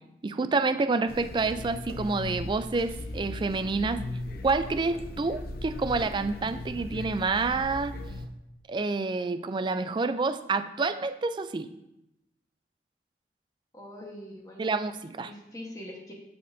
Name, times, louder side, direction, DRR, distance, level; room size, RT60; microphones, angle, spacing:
voice 1, 0.2-4.0 4.4-7.9 8.7-11.7 14.6-15.3, right 3 dB, 25° right, 11 dB, 0.3 m, -28 dB
sound 1, 1.1-8.3, left 2 dB, 55° left, 0.7 m, -38 dB
voice 2, 13.7-14.8 15.2-16.1, left 1 dB, 20° left, -1 dB, 1.2 m, -43 dB
12.5 x 4.2 x 2.6 m, 0.89 s
head